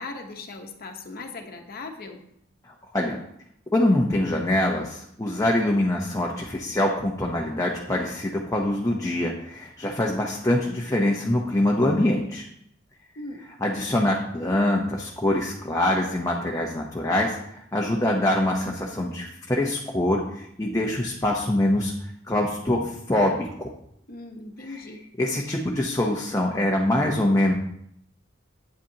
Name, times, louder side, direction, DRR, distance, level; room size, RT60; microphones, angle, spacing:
voice 1, 0.0-2.2 13.2-13.4 24.1-25.0, left 3 dB, 50° left, 4 dB, 1.0 m, -38 dB
voice 2, 3.7-12.4 13.6-21.9 22.3-23.7 24.7-24.8 25.2-27.5, left 1 dB, 15° left, -2 dB, 0.7 m, -24 dB
8.9 x 8.0 x 2.8 m, 0.73 s
head